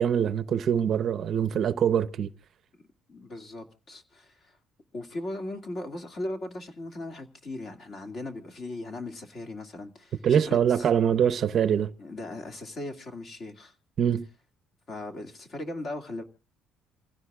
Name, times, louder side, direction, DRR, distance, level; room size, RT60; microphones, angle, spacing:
voice 1, 0.0-2.3 10.2-11.9 14.0-14.3, right 8 dB, 40° right, 0.7 m, -24 dB
voice 2, 3.1-4.6 4.9-10.9 12.0-13.7 14.9-16.2, left 2 dB, 35° left, 2.2 m, -38 dB
27.5 x 16.0 x 2.4 m
cardioid pair, 155°, 0 cm